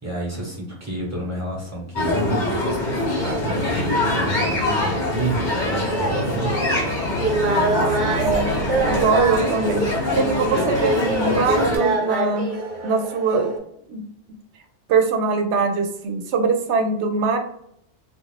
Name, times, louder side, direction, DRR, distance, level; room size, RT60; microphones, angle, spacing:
voice 1, 0.0-6.6, right 1 dB, 15° right, -4 dB, 0.9 m, -29 dB
sound 1, 2.0-11.8, left 2 dB, 45° left, 0.8 m, -24 dB
sound 2, 5.6-13.6, right 2 dB, 50° right, 0.8 m, -26 dB
voice 2, 7.4-8.5 8.8-12.5 12.8-13.5 13.9-14.0 14.9-17.4, right 4 dB, 85° right, 5 dB, 0.9 m, -22 dB
2.4 x 2.3 x 3.2 m, 0.73 s
omnidirectional pair, 1.1 m